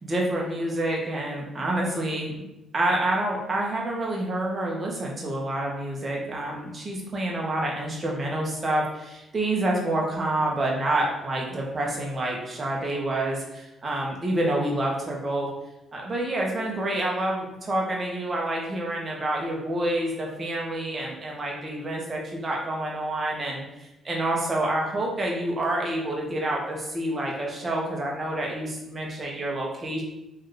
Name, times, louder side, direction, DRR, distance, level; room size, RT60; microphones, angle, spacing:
voice 1, 0.0-2.3 2.7-15.5 15.9-30.0, right 1 dB, 35° right, -2 dB, 1.2 m, -28 dB
3.3 x 3.1 x 3.9 m, 0.90 s
cardioid pair, 90°, 0 cm